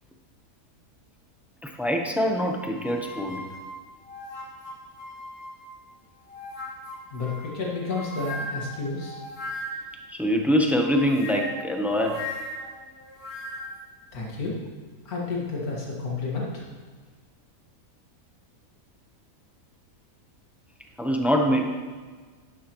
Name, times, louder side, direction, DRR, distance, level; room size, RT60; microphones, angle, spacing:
voice 1, 1.6-3.4 10.1-12.3 21.0-21.7, equal, ahead, 2 dB, 0.6 m, -24 dB
sound 1, 2.6-5.8 6.3-10.0 10.8-13.8, left 1 dB, 40° left, 1.6 m, -38 dB
voice 2, 7.1-9.2 14.1-14.6 15.1-16.6, left 3 dB, 80° left, -4 dB, 2.4 m, -31 dB
11.5 x 9.3 x 3.1 m, 1.5 s
omnidirectional pair, 1.5 m